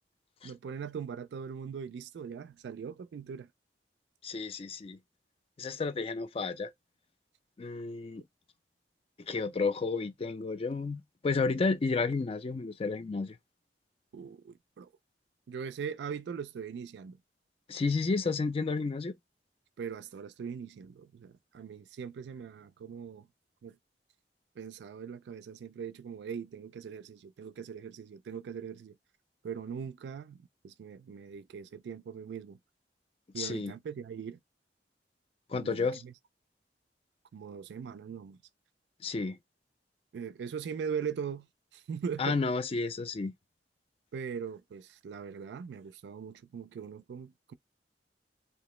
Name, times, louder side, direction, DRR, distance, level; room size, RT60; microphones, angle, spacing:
voice 1, 0.4-3.5 14.1-14.9 15.5-17.2 19.8-23.3 23.6-23.8 24.6-28.9 29.4-32.6 33.3-34.4 35.5-36.1 37.3-38.4 40.1-41.5 41.7-42.4 44.1-47.5, right 6 dB, 70° right, 0.3 m, -40 dB
voice 2, 4.2-5.0 5.6-6.7 7.6-8.2 9.2-13.4 17.7-19.1 33.4-33.7 35.5-36.0 39.0-39.4 42.2-43.3, left 4 dB, 35° left, 0.4 m, -31 dB
2.7 x 2.0 x 3.0 m
head